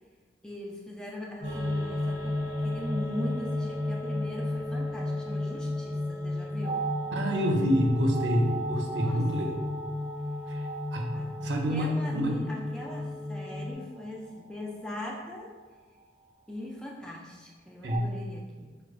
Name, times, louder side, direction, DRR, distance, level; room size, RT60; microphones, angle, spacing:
voice 1, 0.4-6.9 8.8-9.3 11.1-11.4 11.7-15.5 16.5-18.8, left 1 dB, 5° left, -2 dB, 0.3 m, -40 dB
sound 1, 1.4-13.7, left 2 dB, 70° left, 1.2 m, -33 dB
sound 2, 1.4-16.5 17.9-18.0, right 4 dB, 35° right, 0.9 m, -41 dB
voice 2, 7.1-9.5 10.5-10.6 10.9-11.1 11.4-12.4 17.8-18.1, equal, 75° right, 1 dB, 0.5 m, -27 dB
4.8 x 2.2 x 2.4 m, 1.4 s
head